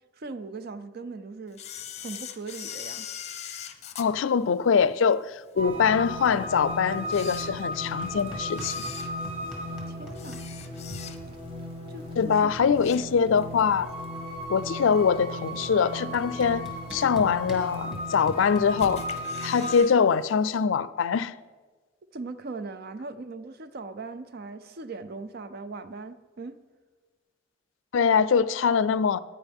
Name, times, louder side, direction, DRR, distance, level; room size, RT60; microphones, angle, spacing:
voice 1, 0.0-1.6 2.0-3.1 9.9-10.4 11.9-12.5 12.9-13.0 22.1-26.6, right 3 dB, 55° right, 0.5 m, -39 dB
Camera, 1.5-5.1 5.6-5.7 6.4-6.5 7.0-8.0 8.5-11.5 11.9-12.1 12.5-13.5 13.9-14.0 14.9-15.0 15.6-16.0 16.4-16.5 16.7-16.8 17.0-17.1 17.8-18.4 18.8-19.9 20.2-20.3 20.6-20.7, left 9 dB, 35° left, 0.6 m, -41 dB
voice 2, 4.0-8.9 12.2-13.9 14.5-19.0 19.4-21.3 27.9-29.2, left 6 dB, 85° left, 0.4 m, -23 dB
sound 1, 5.6-19.8, left 1 dB, 30° right, 1.4 m, -36 dB
sound 2, 8.0-9.0 9.2-11.0 12.3-12.4 12.6-13.0 13.3-14.7 15.6-15.7 16.1-18.9, equal, ahead, 1.8 m, -42 dB
14.5 x 9.6 x 3.5 m
head